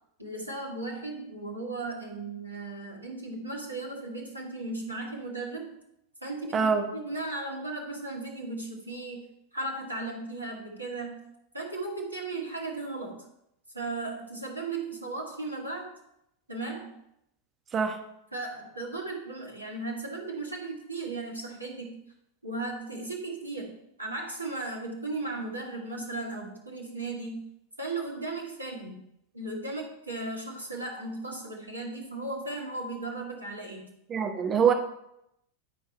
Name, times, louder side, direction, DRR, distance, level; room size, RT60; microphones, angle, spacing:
voice 1, 0.2-5.8 6.2-11.3 11.5-13.3 13.7-15.9 16.5-17.0 18.3-22.0 22.4-27.5 27.8-29.0 29.3-33.9, right 2 dB, 85° right, 1 dB, 1.6 m, -36 dB
voice 2, 6.5-6.9 17.7-18.0 34.1-34.7, right 6 dB, 25° right, 5 dB, 1.1 m, -24 dB
11.0 x 4.6 x 4.3 m, 0.80 s
figure-of-eight pair, 90°, 0 cm